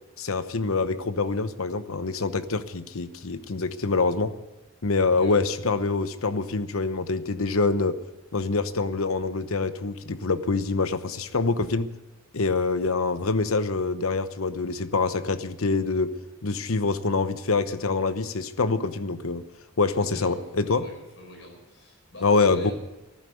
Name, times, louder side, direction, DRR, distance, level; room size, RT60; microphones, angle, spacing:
voice 1, 0.2-4.3 4.8-8.0 8.3-11.9 12.3-16.1 16.4-19.4 19.8-20.9 22.2-22.7, left 3 dB, 75° left, 12 dB, 0.9 m, -25 dB
voice 2, 5.1-5.4 20.0-22.7, left 1 dB, 55° left, 2 dB, 5.6 m, -43 dB
14.5 x 11.5 x 8.4 m, 1.0 s
head